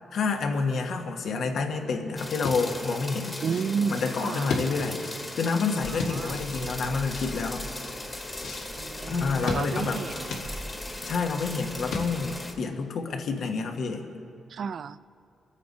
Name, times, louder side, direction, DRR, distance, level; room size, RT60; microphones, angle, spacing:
voice 1, 0.1-3.4 3.9-5.1 5.3-7.6 9.1-10.0 11.0-14.0, left 4 dB, 70° left, 3 dB, 1.3 m, -28 dB
sound 1, 2.2-12.5, left 2 dB, 20° left, 1.5 m, -38 dB
sound 2, 2.4-12.4, left 3 dB, 85° left, 1.7 m, -37 dB
voice 2, 3.4-4.5 6.1-6.4 8.8-10.3 14.5-15.0, right 6 dB, 60° right, 16 dB, 0.4 m, -32 dB
sound 3, 5.8-12.6, right 1 dB, 15° right, 0.7 m, -44 dB
26.5 x 8.9 x 4.2 m, 2.3 s
cardioid pair, 85°, 0 cm